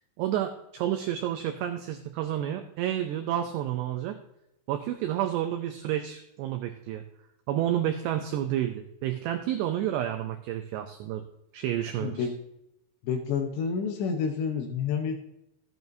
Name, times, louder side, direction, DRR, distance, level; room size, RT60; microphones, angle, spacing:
voice 1, 0.2-4.2 4.7-7.0 7.5-11.3 11.5-12.3, right 11 dB, 90° right, 6 dB, 2.4 m, -30 dB
voice 2, 12.0-12.3 13.0-15.2, left 6 dB, 75° left, 4 dB, 2.9 m, -29 dB
13.5 x 9.3 x 2.7 m, 0.80 s
omnidirectional pair, 5.7 m